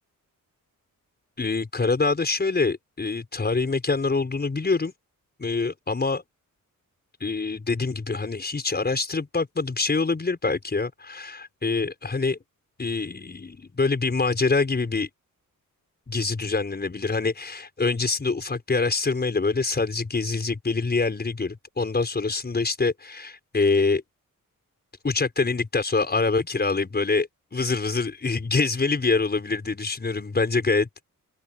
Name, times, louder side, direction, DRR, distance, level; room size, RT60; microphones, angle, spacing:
voice 1, 1.4-4.9 5.4-6.2 7.2-12.4 12.8-15.1 16.1-24.0 25.0-30.9, left 3 dB, 30° left, 5.8 m, -25 dB
open air
wide cardioid pair, 140°, 34 cm